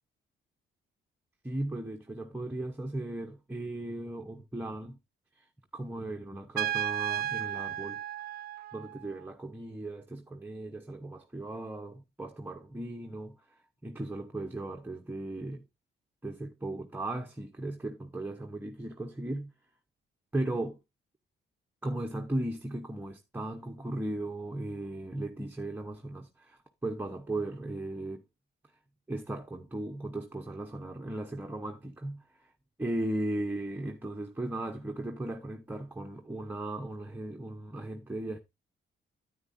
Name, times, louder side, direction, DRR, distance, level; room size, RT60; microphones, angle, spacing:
voice 1, 1.4-5.0 5.7-8.0 8.7-13.4 13.8-15.6 16.2-19.5 20.3-20.8 21.8-28.2 29.1-32.2 32.8-38.4, right 1 dB, 10° right, 0.9 m, -37 dB
Trumpet, 6.6-9.2, right 11 dB, 50° right, 0.4 m, -34 dB
9.5 x 9.3 x 2.6 m
cardioid pair, 90°, 20 cm